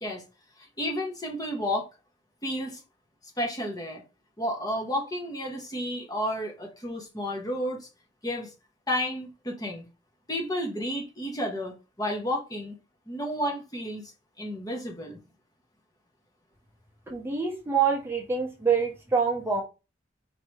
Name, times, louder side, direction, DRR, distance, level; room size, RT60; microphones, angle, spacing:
voice 1, 0.8-1.9 2.4-2.8 3.4-4.0 4.4-7.9 8.2-8.5 8.9-9.9 10.3-12.7 13.1-14.0 14.4-15.2, equal, 20° left, 0.9 m, -31 dB
voice 2, 17.1-19.6, right 5 dB, 10° right, 0.8 m, -26 dB
4.6 x 2.9 x 3.2 m
head